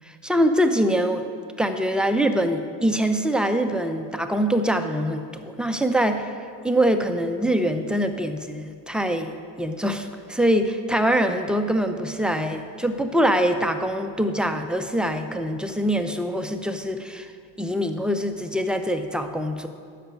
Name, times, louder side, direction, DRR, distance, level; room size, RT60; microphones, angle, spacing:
voice 1, 0.0-1.3 1.6-6.3 6.6-9.3 9.6-17.3 17.6-19.7, equal, ahead, 6 dB, 0.7 m, -24 dB
10.0 x 6.6 x 6.5 m, 2.3 s
hypercardioid pair, 70°, 49 cm